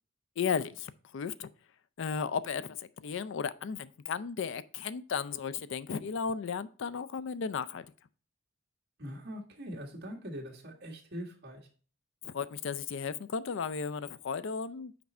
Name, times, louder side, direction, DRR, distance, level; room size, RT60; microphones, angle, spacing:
voice 1, 0.4-1.5 2.0-7.8 12.2-14.9, left 6 dB, 60° left, 0.4 m, -35 dB
voice 2, 9.0-11.7, equal, 55° right, 1.8 m, -42 dB
5.9 x 5.2 x 4.2 m
head